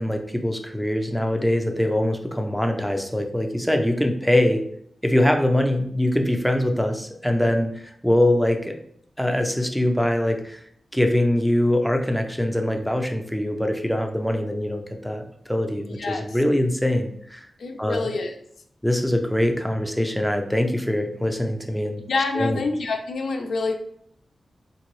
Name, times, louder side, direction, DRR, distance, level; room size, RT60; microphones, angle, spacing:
voice 1, 0.0-4.6 5.0-8.7 9.2-10.6 10.9-17.5 17.8-18.1 18.8-22.0 22.4-22.6, left 1 dB, ahead, 4 dB, 0.3 m, -23 dB
voice 2, 15.8-16.2 17.6-18.3 22.1-23.7, left 3 dB, 85° left, 3 dB, 0.4 m, -26 dB
3.7 x 2.6 x 3.0 m, 0.66 s
wide cardioid pair, 175°, 0 cm